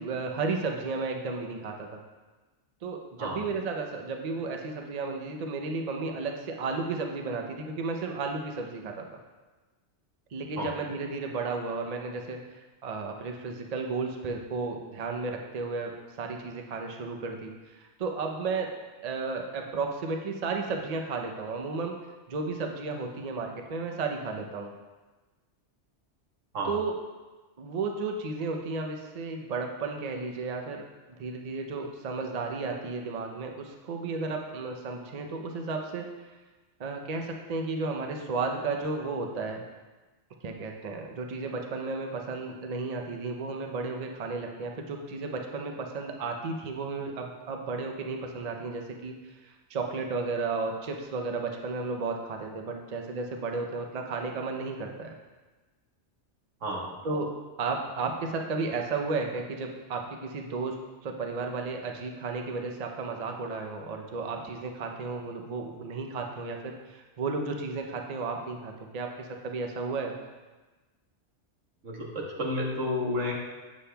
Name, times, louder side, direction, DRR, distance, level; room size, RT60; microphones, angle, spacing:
voice 1, 0.0-2.0 2.8-9.2 10.3-15.9 16.2-18.7 19.0-22.0 22.3-24.7 26.7-27.0 27.6-30.8 31.2-36.1 36.8-39.6 40.4-55.2 57.0-57.3 57.6-60.8 61.0-70.1, right 4 dB, 45° right, 2 dB, 0.6 m, -33 dB
voice 2, 56.6-56.9 71.8-73.3, left 1 dB, 90° right, -3 dB, 1.6 m, -31 dB
8.4 x 7.2 x 2.2 m, 1.2 s
omnidirectional pair, 1.2 m